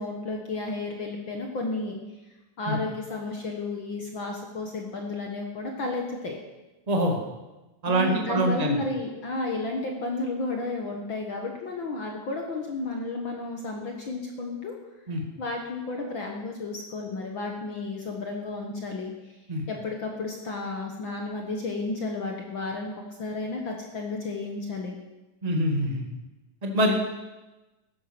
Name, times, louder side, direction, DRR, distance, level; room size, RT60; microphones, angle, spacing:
voice 1, 0.0-2.0 2.6-6.4 7.8-14.8 15.4-19.1 19.7-22.9 23.2-25.0, left 3 dB, 50° left, 1 dB, 1.5 m, -32 dB
voice 2, 6.9-7.2 7.8-8.8 15.1-15.2 19.5-19.6 25.4-26.0 26.6-26.9, right 1 dB, 15° right, 2 dB, 1.3 m, -24 dB
14.0 x 11.0 x 6.1 m, 1.1 s
omnidirectional pair, 3.7 m